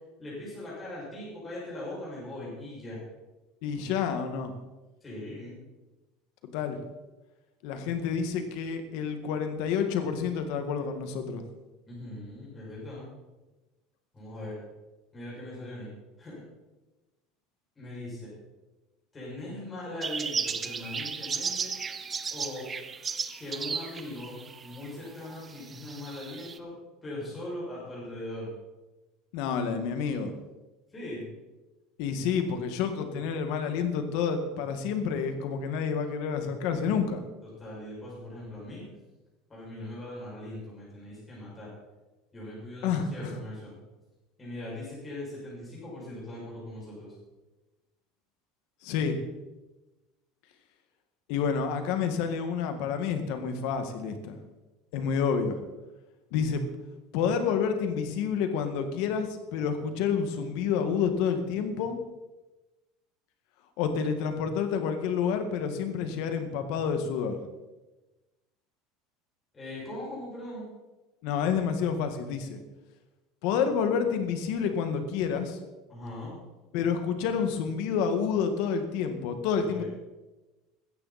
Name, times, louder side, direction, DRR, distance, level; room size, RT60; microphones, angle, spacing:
voice 1, 0.2-3.0 5.0-5.6 11.9-13.1 14.1-14.6 15.1-15.9 16.2-16.4 17.8-18.3 19.1-21.7 22.3-22.7 23.3-26.7 27.0-28.5 30.9-31.2 37.4-38.9 39.5-41.7 42.3-43.7 44.4-47.1 69.5-70.7 75.9-76.3 79.7-79.9, left 1 dB, 15° left, -7 dB, 6.5 m, -40 dB
voice 2, 3.6-4.5 6.4-6.8 7.6-11.4 29.3-30.3 32.0-37.2 42.8-43.4 48.8-49.2 51.3-54.4 54.9-55.6 56.3-56.7 57.1-62.0 63.8-67.4 71.2-72.6 73.4-75.6 76.7-79.8, left 6 dB, 55° left, 7 dB, 1.8 m, -29 dB
sound 1, 20.0-24.9 25.3-26.6, right 5 dB, 15° right, 0.6 m, -35 dB
16.0 x 13.5 x 4.3 m, 1.1 s
cardioid pair, 180°, 0 cm